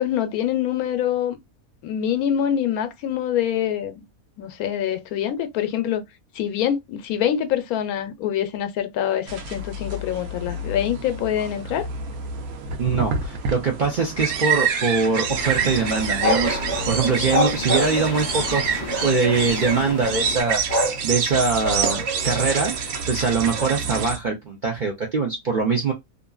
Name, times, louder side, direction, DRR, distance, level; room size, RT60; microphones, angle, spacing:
voice 1, 0.0-1.4 1.8-4.0 4.4-6.0 6.3-11.9, left 10 dB, 85° left, 1.1 m, -25 dB
sound 1, 9.3-24.2, right 6 dB, 80° right, 1.1 m, -27 dB
voice 2, 12.8-16.6 16.8-25.9, right 4 dB, 60° right, 0.5 m, -23 dB
sound 2, 15.3-20.4, left 3 dB, 50° left, 0.6 m, -33 dB
sound 3, 15.9-18.3 18.9-19.8 20.4-21.0 21.3-22.7 23.5-23.8, left 1 dB, 5° left, 1.4 m, -27 dB
2.8 x 2.5 x 2.2 m
omnidirectional pair, 1.5 m